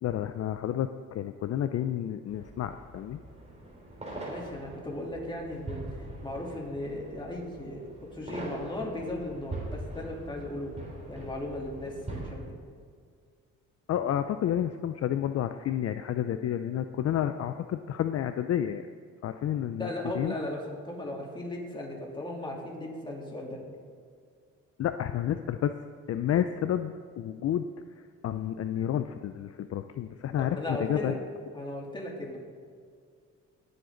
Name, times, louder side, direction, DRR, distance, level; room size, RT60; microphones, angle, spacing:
voice 1, 0.0-3.2 13.9-18.9 19.2-20.3 24.8-25.7 26.1-27.7 28.2-31.2, left 10 dB, 55° left, 9 dB, 0.5 m, -30 dB
sound 1, 2.3-12.3, right 2 dB, 20° right, 3.5 m, -42 dB
voice 2, 4.1-6.0 6.2-10.7 11.1-12.5 19.8-23.6 30.4-31.1 31.5-32.4, left 1 dB, 15° left, -2 dB, 3.2 m, -37 dB
20.5 x 7.9 x 3.9 m, 2.1 s
cardioid pair, 90°, 30 cm